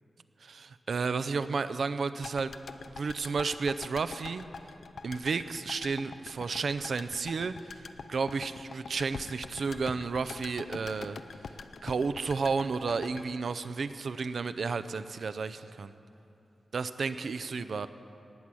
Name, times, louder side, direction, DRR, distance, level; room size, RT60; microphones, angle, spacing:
voice 1, 0.4-2.5 2.9-4.5 5.0-7.8 8.1-11.2 11.8-15.9 16.7-17.9, right 4 dB, 75° right, 13 dB, 0.5 m, -32 dB
sound 1, 2.2-14.4 14.7-14.8, left 4 dB, 85° left, 0.5 m, -44 dB
19.0 x 8.4 x 6.2 m, 2.9 s
cardioid pair, 70°, 0 cm